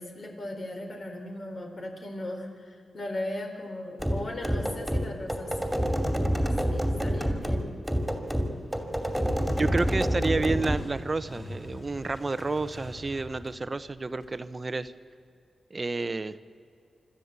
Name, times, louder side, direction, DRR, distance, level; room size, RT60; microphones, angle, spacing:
voice 1, 0.0-6.1 6.7-7.7, left 1 dB, 55° left, 1 dB, 4.2 m, -38 dB
sound 1, 4.0-10.8, equal, ahead, 2.7 m, -28 dB
Motorcycle, 8.2-14.9, left 1 dB, 40° left, 3.0 m, -46 dB
voice 2, 9.6-14.9 15.7-16.4, right 3 dB, 35° right, 13 dB, 0.9 m, -30 dB
26.5 x 13.0 x 8.1 m, 2.6 s
cardioid pair, 70°, 0 cm